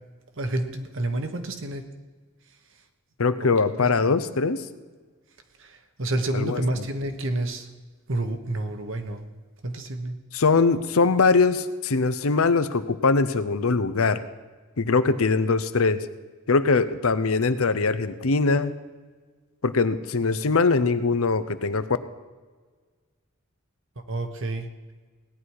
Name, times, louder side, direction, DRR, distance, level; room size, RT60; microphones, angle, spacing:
voice 1, 0.4-1.8 3.8-3.9 5.6-7.7 8.1-9.2 9.6-10.2 24.1-24.7, right 1 dB, 60° right, 7 dB, 1.3 m, -29 dB
voice 2, 3.2-4.6 6.3-6.6 10.3-14.2 14.8-16.1 16.5-18.7 19.6-21.9, left 4 dB, 75° left, 12 dB, 0.7 m, -22 dB
17.5 x 10.0 x 4.8 m, 1.4 s
head